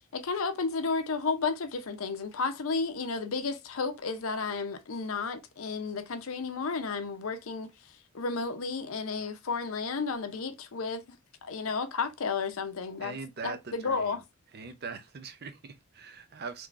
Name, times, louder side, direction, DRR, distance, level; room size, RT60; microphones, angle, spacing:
voice 1, 0.1-11.2 11.4-13.2 13.4-14.2, left 4 dB, 80° left, 0.6 m, -32 dB
voice 2, 13.0-14.2 14.5-16.7, right 5 dB, 50° right, 0.6 m, -41 dB
3.7 x 3.0 x 2.4 m
head